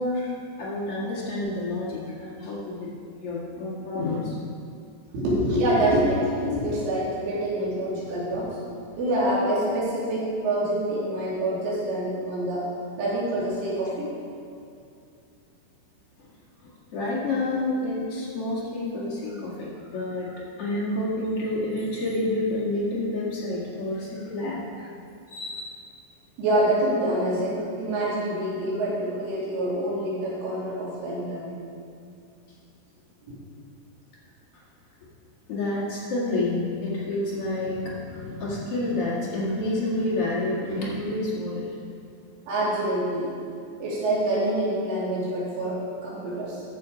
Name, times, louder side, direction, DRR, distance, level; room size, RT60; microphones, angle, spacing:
voice 1, 0.0-2.9 3.2-4.4 16.2-16.3 16.6-24.9 25.3-25.7 35.5-41.7, left 2 dB, 60° left, -7 dB, 1.5 m, -29 dB
voice 2, 5.1-8.6 9.0-12.7 13.0-14.1 26.4-31.6 33.3-33.4 42.5-43.3 43.8-46.6, right 1 dB, 85° right, -8 dB, 5.4 m, -26 dB
13.0 x 7.0 x 5.0 m, 2.5 s
omnidirectional pair, 5.5 m